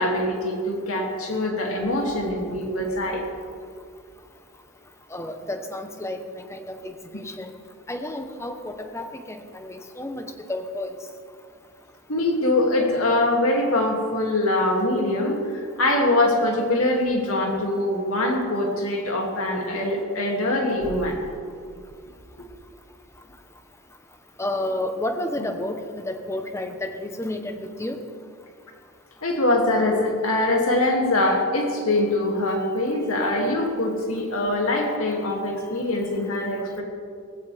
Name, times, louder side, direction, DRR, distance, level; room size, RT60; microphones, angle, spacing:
voice 1, 0.0-3.2 12.1-21.2 29.2-36.8, left 1 dB, 75° left, 0 dB, 2.7 m, -23 dB
voice 2, 5.1-7.5 7.9-10.2 10.5-10.9 24.4-28.0, left 1 dB, 15° left, 6 dB, 1.1 m, -31 dB
18.5 x 16.0 x 3.6 m, 2.3 s
head